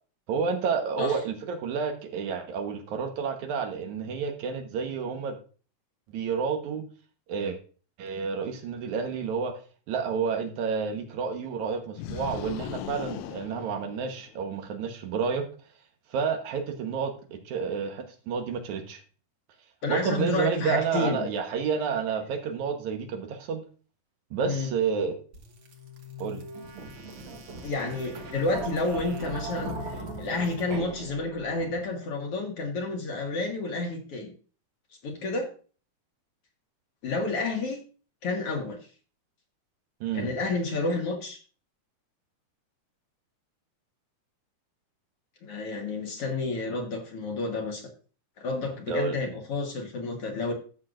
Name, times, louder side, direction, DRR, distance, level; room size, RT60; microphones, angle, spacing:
voice 1, 0.3-5.4 6.1-6.8 7.3-7.6 8.0-9.6 9.9-15.5 16.1-19.0 19.9-23.6 24.3-25.2 26.2-26.4 40.0-40.3 48.9-49.2, right 6 dB, 75° right, 5 dB, 2.5 m, -30 dB
sound 1, 12.0-14.5, left 11 dB, 80° left, 1.7 m, -38 dB
voice 2, 19.8-21.3 24.4-24.7 27.6-34.3 35.0-35.5 37.0-37.8 38.2-38.8 40.1-41.4 45.4-47.9 48.4-50.5, left 3 dB, 55° left, 2 dB, 2.0 m, -30 dB
sound 2, 25.3-32.1, right 2 dB, 50° right, 1.6 m, -39 dB
14.0 x 6.5 x 2.5 m, 0.38 s
omnidirectional pair, 3.5 m